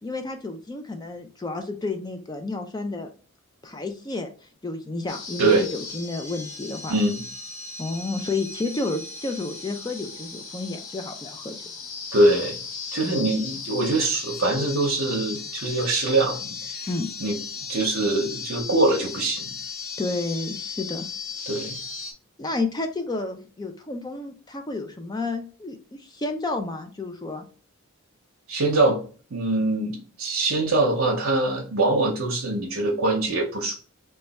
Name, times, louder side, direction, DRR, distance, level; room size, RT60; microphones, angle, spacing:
voice 1, 0.0-3.1 3.6-4.3 4.6-7.0 7.8-11.6 13.0-13.3 16.9-17.1 20.0-21.1 22.4-27.5, left 3 dB, 20° left, 6 dB, 0.4 m, -31 dB
sound 1, 5.1-22.1, left 5 dB, 65° left, 0.7 m, -36 dB
voice 2, 6.9-7.2 12.1-12.6 12.9-16.9 17.2-17.4 17.7-19.5 21.5-21.8 28.5-29.0 29.3-33.7, right 2 dB, 65° right, -1 dB, 0.7 m, -23 dB
3.2 x 2.3 x 4.0 m, 0.38 s
head